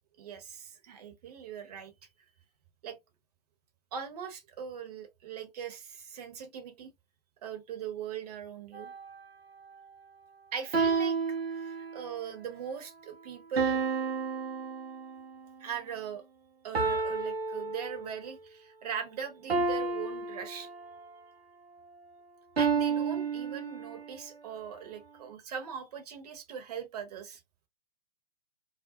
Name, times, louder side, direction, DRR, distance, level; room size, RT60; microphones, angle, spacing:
voice 1, 0.2-1.9 2.8-3.0 3.9-6.9 7.4-8.9 10.5-11.2 11.5-13.8 15.6-16.2 16.6-20.7 22.6-27.4, right 7 dB, 40° right, 0.8 m, -40 dB
sound 1, 8.7-9.2 10.7-12.2 13.6-15.4 16.7-18.4 19.5-21.1 22.6-24.2, right 4 dB, 80° right, 0.7 m, -31 dB
2.4 x 2.0 x 2.7 m
figure-of-eight pair, 120°, 30 cm